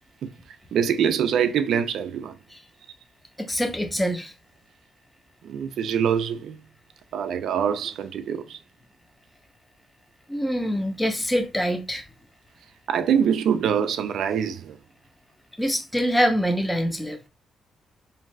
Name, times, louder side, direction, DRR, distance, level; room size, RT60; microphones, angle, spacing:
voice 1, 0.7-2.4 5.4-6.6 7.1-8.6 12.9-14.8, right 8 dB, 70° right, 0.3 m, -24 dB
voice 2, 3.4-4.3 10.3-12.0 15.6-17.2, equal, 5° left, 0.5 m, -24 dB
2.6 x 2.4 x 3.1 m
cardioid pair, 135°, 0 cm